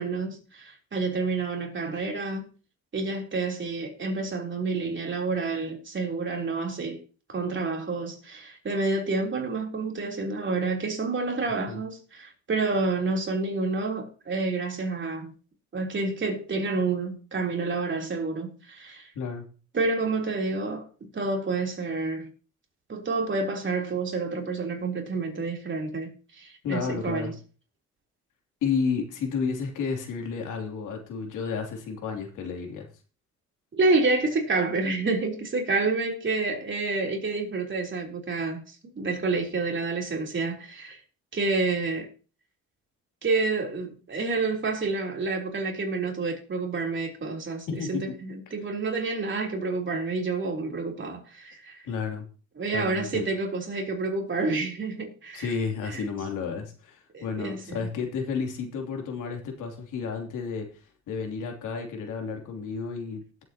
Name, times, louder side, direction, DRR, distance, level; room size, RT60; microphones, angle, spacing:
voice 1, 0.0-2.5 2.9-7.0 7.3-15.3 15.7-19.1 19.7-22.3 22.9-27.3 33.7-41.0 41.3-42.1 43.2-51.8 52.6-55.5 55.8-56.0 57.1-57.9, right 3 dB, 40° right, 3.6 m, -29 dB
voice 2, 26.6-27.3 28.6-32.9 47.7-48.0 51.8-52.2 52.7-53.2 55.3-63.4, left 5 dB, 85° left, 3.1 m, -31 dB
19.0 x 8.0 x 2.9 m
cardioid pair, 90°, 30 cm